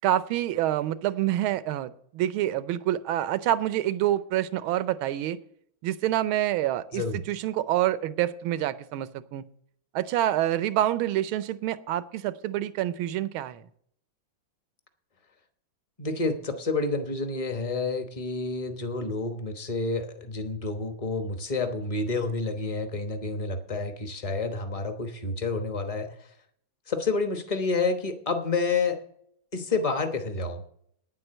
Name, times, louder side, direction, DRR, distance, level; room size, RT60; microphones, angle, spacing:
voice 1, 0.0-5.4 5.8-9.4 9.9-13.6, right 13 dB, 85° right, 15 dB, 1.5 m, -27 dB
voice 2, 16.0-26.1 26.9-29.0 29.5-30.6, left 3 dB, 25° left, 7 dB, 0.7 m, -29 dB
9.7 x 7.6 x 7.8 m, 0.67 s
omnidirectional pair, 2.2 m